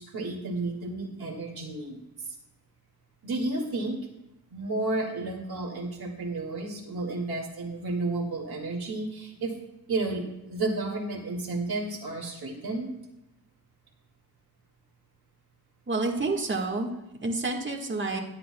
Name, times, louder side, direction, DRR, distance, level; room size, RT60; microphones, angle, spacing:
voice 1, 0.0-2.0 3.2-4.0 4.5-9.6 9.9-12.9, right 2 dB, 80° right, 0 dB, 2.2 m, -32 dB
voice 2, 15.9-16.9 17.2-18.2, right 3 dB, 30° right, 1 dB, 1.6 m, -28 dB
21.5 x 8.0 x 2.2 m, 0.93 s
wide cardioid pair, 90°, 37 cm